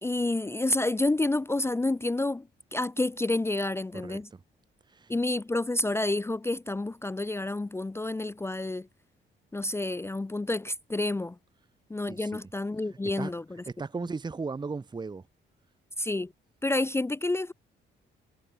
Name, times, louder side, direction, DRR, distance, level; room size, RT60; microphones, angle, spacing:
voice 1, 0.0-4.3 5.1-8.9 9.5-11.4 11.9-13.4 16.0-16.3 16.6-17.5, left 2 dB, 10° left, 0.5 m, -29 dB
voice 2, 3.9-4.4 4.9-5.2 12.1-12.5 13.2-13.3 13.7-15.3, right 4 dB, 20° right, 1.0 m, -36 dB
cardioid pair, 90°, 20 cm